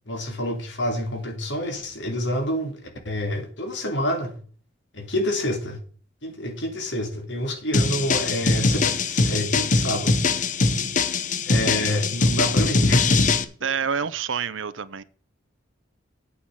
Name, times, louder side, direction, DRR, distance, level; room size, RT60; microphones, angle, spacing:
voice 1, 0.1-2.8 3.0-4.4 4.9-5.8 6.2-10.1 11.5-13.3, left 1 dB, 70° left, 2.6 m, -28 dB
sound 1, 7.7-13.4, left 3 dB, 40° left, 0.8 m, -22 dB
voice 2, 13.6-15.0, right 6 dB, 90° right, 0.7 m, -27 dB
8.6 x 5.8 x 7.1 m
head